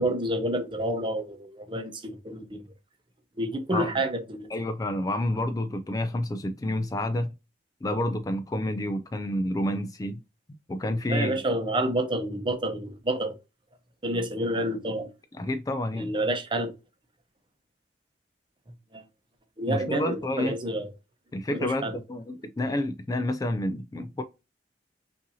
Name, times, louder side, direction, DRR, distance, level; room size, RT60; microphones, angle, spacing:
voice 1, 0.0-2.6 3.4-4.5 11.1-13.4 14.0-15.1 15.9-16.7 18.9-19.0 19.6-20.9 21.5-22.0, right 1 dB, 30° right, 0.8 m, -29 dB
voice 2, 4.5-7.3 7.8-10.2 10.7-11.4 15.4-16.2 19.7-20.6 21.3-24.2, left 1 dB, 20° left, 0.3 m, -29 dB
5.5 x 2.7 x 2.7 m
head